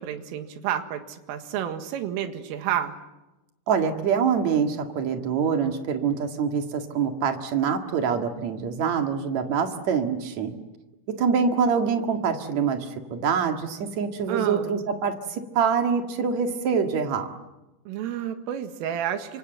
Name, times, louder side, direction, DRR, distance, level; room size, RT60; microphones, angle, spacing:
voice 1, 0.0-3.0 14.3-14.7 17.9-19.4, right 10 dB, 85° right, 7 dB, 4.3 m, -30 dB
voice 2, 3.7-10.5 11.2-17.3, right 6 dB, 50° right, 5 dB, 2.3 m, -25 dB
28.0 x 26.0 x 7.9 m, 1.0 s
omnidirectional pair, 5.8 m